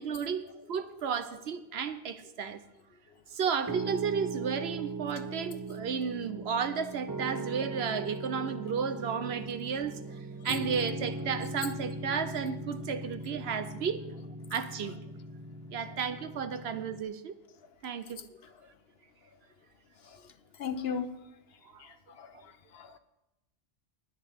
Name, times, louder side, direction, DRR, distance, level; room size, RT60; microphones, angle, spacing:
voice 1, 0.0-2.6 3.3-14.0 14.5-15.0 15.7-17.3 17.8-18.2 21.7-21.8, right 6 dB, 65° right, 1.0 m, -33 dB
voice 2, 0.9-1.4 6.0-6.1 6.6-6.8 10.4-10.6 12.1-12.2 18.2-18.3 20.1-20.3 20.6-21.2 21.8-23.0, left 6 dB, 60° left, 1.0 m, -39 dB
Piano, 3.7-17.0, right 2 dB, 25° right, 0.4 m, -39 dB
20.5 x 8.7 x 3.6 m
omnidirectional pair, 1.2 m